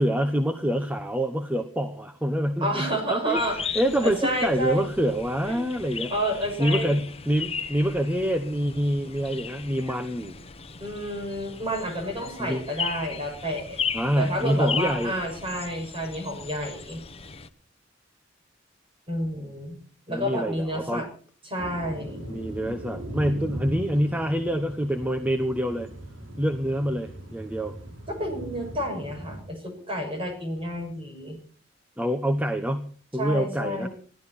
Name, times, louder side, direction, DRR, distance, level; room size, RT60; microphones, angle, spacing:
voice 1, 0.0-3.4 3.7-6.1 6.6-10.4 12.4-12.6 13.9-15.1 20.1-21.0 22.3-25.9 26.4-27.7 32.0-33.9, equal, 10° right, 8 dB, 1.1 m, -26 dB
voice 2, 2.6-3.6 4.0-4.8 5.5-5.6 6.1-7.0 10.8-13.8 14.2-17.0 19.1-19.8 20.1-21.1 21.4-22.2 28.1-31.4 33.2-33.9, equal, 30° right, 4 dB, 6.5 m, -30 dB
sound 1, 3.3-17.5, left 6 dB, 30° left, 1.2 m, -36 dB
sound 2, 21.6-29.4, right 1 dB, 90° right, 6.0 m, -39 dB
21.5 x 15.0 x 4.3 m, 0.44 s
head